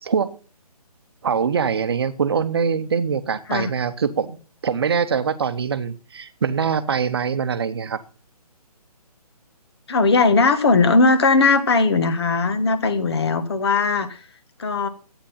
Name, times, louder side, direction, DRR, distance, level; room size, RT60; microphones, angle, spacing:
voice 1, 0.0-0.4 1.2-4.4 4.6-8.0, right 6 dB, 40° right, 11 dB, 1.0 m, -23 dB
voice 2, 9.9-14.2 14.6-14.9, left 3 dB, 40° left, 10 dB, 1.6 m, -18 dB
11.5 x 9.1 x 5.7 m, 0.36 s
hypercardioid pair, 170°, 20 cm